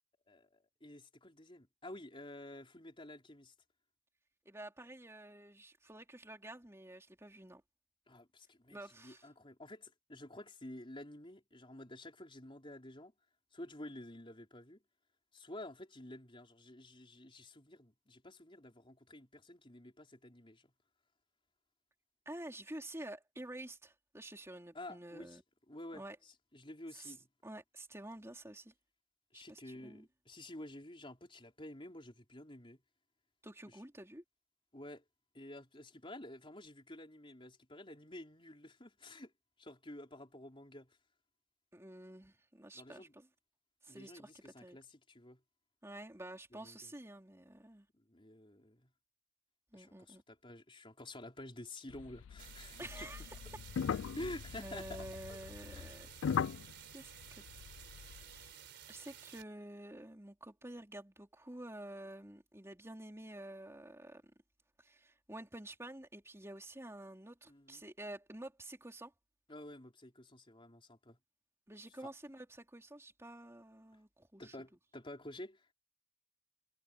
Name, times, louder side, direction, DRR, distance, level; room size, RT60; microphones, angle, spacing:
voice 1, 0.3-3.5 8.1-13.1 13.5-14.8 15.3-20.7 24.7-25.4 25.7-27.3 29.3-32.8 33.7-33.8 34.7-35.0 35.3-39.3 39.6-41.0 42.7-43.1 43.9-45.4 46.5-46.9 47.9-48.9 49.7-53.1 54.1-55.4 55.7-55.9 67.5-67.8 69.5-71.2 72.0-72.1 74.4-75.7, left 1 dB, 25° left, 4.3 m, -50 dB
voice 2, 4.4-7.6 8.7-9.3 22.2-25.4 25.9-26.2 26.9-27.1 27.4-28.7 29.3-30.1 33.4-34.2 41.7-43.3 43.8-44.8 45.8-47.9 49.7-50.2 52.8-53.3 54.6-56.1 56.9-57.4 58.2-58.5 58.9-64.2 64.8-69.1 71.7-74.5, right 1 dB, 15° right, 3.3 m, -49 dB
sound 1, 51.9-58.5, left 7 dB, 80° left, 0.3 m, -41 dB
sound 2, 52.4-59.4, right 10 dB, 60° right, 4.1 m, -54 dB
head